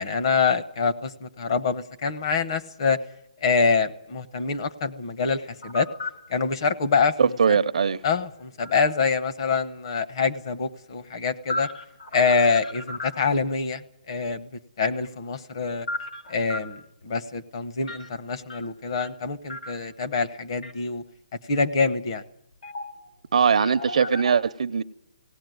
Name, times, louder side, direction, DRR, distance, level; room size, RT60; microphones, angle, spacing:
voice 1, 0.0-3.0 3.4-5.9 6.3-7.4 8.0-11.7 12.1-14.5 14.8-15.9 16.3-21.0 21.5-22.2, left 5 dB, 40° left, 1.1 m, -25 dB
sound 1, 5.5-6.2 7.9-9.0 11.0-13.4 14.9-16.7 17.8-18.1 18.5-19.2 19.5-20.1 20.6-20.7 22.6-23.1 23.4-24.3, left 2 dB, 80° left, 4.2 m, -35 dB
voice 2, 7.2-8.0 23.3-24.8, right 6 dB, 60° right, 0.7 m, -21 dB
18.0 x 17.0 x 9.3 m
hypercardioid pair, 175°, 4 cm